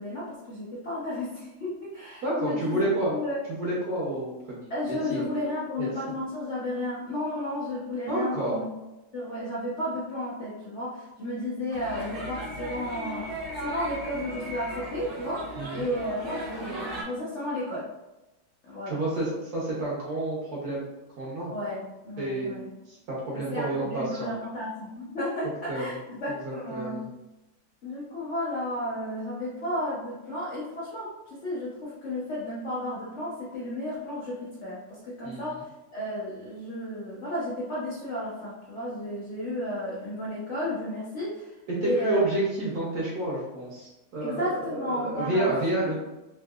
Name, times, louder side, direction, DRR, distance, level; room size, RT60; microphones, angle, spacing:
voice 1, 0.0-3.4 4.7-8.6 9.1-13.3 13.6-15.5 15.7-17.9 18.7-19.0 21.5-22.7 23.3-27.0 27.8-41.5 41.8-42.2 44.2-45.5 45.8-46.0, left 1 dB, 80° left, -7 dB, 0.6 m, -33 dB
voice 2, 2.2-3.1 3.5-4.6 4.9-5.2 5.8-5.9 8.1-8.6 15.6-15.9 18.9-20.9 21.2-21.5 22.2-22.6 22.9-24.3 25.7-25.9 26.4-27.1 35.2-35.4 41.7-46.0, right 2 dB, 60° right, -5 dB, 1.0 m, -29 dB
sound 1, 11.7-17.0, right 1 dB, 85° right, 0.6 m, -37 dB
3.7 x 2.7 x 2.3 m, 0.99 s
omnidirectional pair, 2.3 m